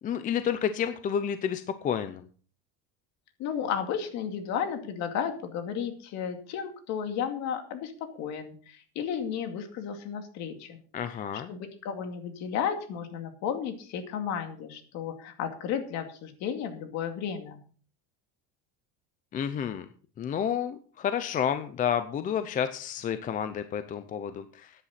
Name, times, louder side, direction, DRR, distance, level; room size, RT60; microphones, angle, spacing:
voice 1, 0.0-2.2 10.9-11.5 19.3-19.9 20.2-24.7, left 8 dB, 25° left, 11 dB, 0.6 m, -30 dB
voice 2, 3.4-10.8 11.5-17.6, left 7 dB, 55° left, 6 dB, 2.4 m, -33 dB
14.5 x 10.0 x 4.2 m, 0.42 s
cardioid pair, 170°, 33 cm